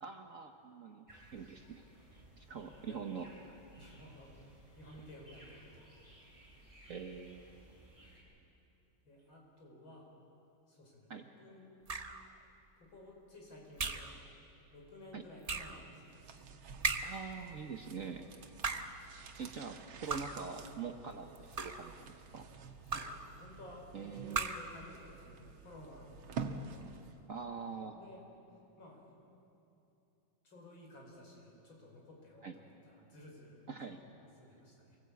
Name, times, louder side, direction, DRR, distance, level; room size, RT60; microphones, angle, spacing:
voice 1, 0.0-1.8 2.1-3.6 6.9-7.5 11.1-11.2 15.1-15.2 17.0-18.2 19.4-22.5 23.9-24.4 27.3-28.0 32.4-32.5 33.7-34.0, right 5 dB, 50° right, 5 dB, 1.2 m, -44 dB
sound 1, 1.1-8.2, right 1 dB, 15° right, 6.8 m, -59 dB
voice 2, 2.7-3.0 3.8-4.4 4.8-5.9 9.0-10.1 10.7-11.7 12.8-14.1 14.7-16.4 18.8-18.9 22.8-26.9 27.9-28.2 28.8-29.2 30.4-35.0, left 1 dB, 70° left, -1 dB, 5.8 m, -55 dB
sound 2, 11.9-12.3 13.8-14.2 15.4-15.8 16.8-17.3 18.5-19.0 20.1-20.5 21.3-21.9 22.9-23.3 24.3-24.8, right 4 dB, 65° right, 0.3 m, -37 dB
sound 3, 16.1-27.3 27.5-27.6, right 5 dB, 90° right, 2.1 m, -49 dB
26.0 x 19.0 x 8.5 m, 2.8 s
omnidirectional pair, 2.2 m